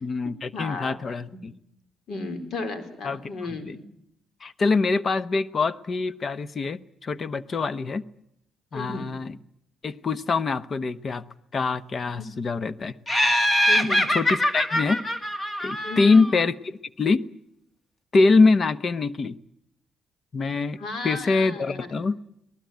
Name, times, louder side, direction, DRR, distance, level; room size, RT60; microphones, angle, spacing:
voice 1, 0.0-1.5 3.0-3.2 3.6-3.8 4.4-8.0 8.7-9.4 9.8-11.2 11.5-12.9 14.1-15.0 15.6-17.2 18.1-19.4 20.3-20.8 21.0-22.2, left 3 dB, 45° left, 16 dB, 0.9 m, -24 dB
voice 2, 0.5-1.0 1.3-1.4 2.1-3.7 8.7-9.1 12.2-12.3 13.7-14.0 15.8-16.2 20.8-22.0, left 3 dB, 65° left, 8 dB, 4.2 m, -34 dB
Laughter, 13.1-16.4, equal, 25° left, 2.1 m, -23 dB
23.5 x 19.0 x 9.4 m, 0.79 s
cardioid pair, 90°, 0 cm